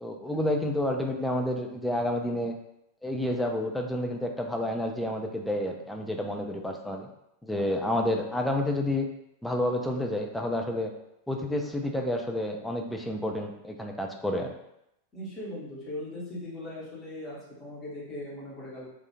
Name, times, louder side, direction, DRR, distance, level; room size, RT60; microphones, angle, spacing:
voice 1, 0.0-2.5 3.0-7.1 7.4-9.1 9.4-10.9 11.3-14.5, left 1 dB, 5° left, 2 dB, 0.3 m, -29 dB
voice 2, 15.1-18.9, left 1 dB, 25° left, -6 dB, 0.9 m, -39 dB
2.3 x 2.3 x 2.9 m, 0.82 s
figure-of-eight pair, 90°, 0 cm